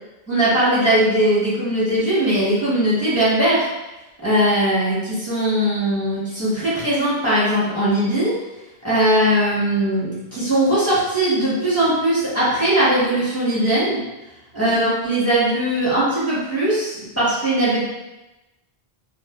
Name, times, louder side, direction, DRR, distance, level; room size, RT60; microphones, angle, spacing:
voice 1, 0.3-3.7 4.2-8.4 8.8-14.0 14.5-17.8, right 1 dB, 15° left, -11 dB, 1.3 m, -19 dB
3.1 x 2.4 x 2.5 m, 1.0 s
omnidirectional pair, 1.1 m